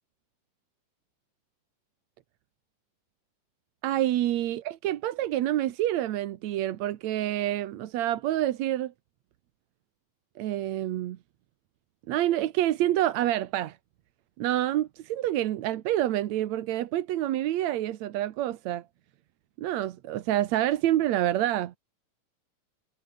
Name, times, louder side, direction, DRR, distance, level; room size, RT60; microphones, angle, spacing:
voice 1, 3.8-8.9 10.4-11.2 12.1-13.8 14.4-18.8 19.6-21.8, right 13 dB, 65° right, 2.1 m, -27 dB
omnidirectional pair, 3.7 m